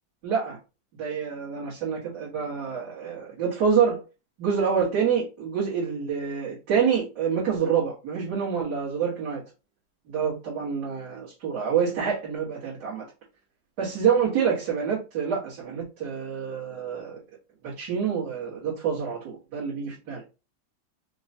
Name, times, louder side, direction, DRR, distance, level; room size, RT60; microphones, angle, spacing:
voice 1, 0.2-0.6 1.0-4.0 4.4-9.4 10.1-13.0 13.8-17.2 17.6-20.2, right 7 dB, 65° right, -9 dB, 1.8 m, -27 dB
4.5 x 2.1 x 2.7 m, 0.31 s
omnidirectional pair, 1.9 m